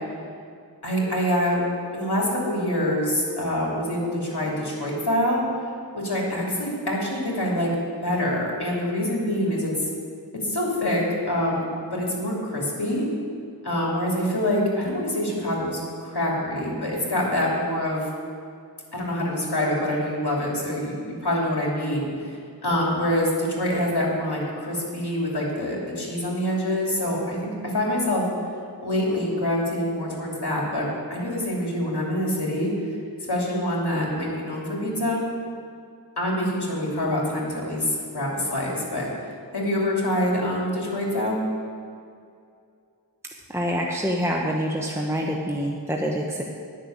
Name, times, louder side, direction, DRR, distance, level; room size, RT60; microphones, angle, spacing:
voice 1, 0.8-1.6 1.9-5.4 5.9-7.7 8.0-9.7 10.4-13.1 13.6-18.1 18.9-20.9 21.2-28.3 28.8-32.7 33.3-35.3 36.2-39.1 39.5-41.4, left 1 dB, 80° left, -3 dB, 3.0 m, -25 dB
voice 2, 43.5-46.4, equal, 5° right, -1 dB, 1.0 m, -26 dB
10.5 x 6.7 x 8.6 m, 2.4 s
wide cardioid pair, 45°, 39 cm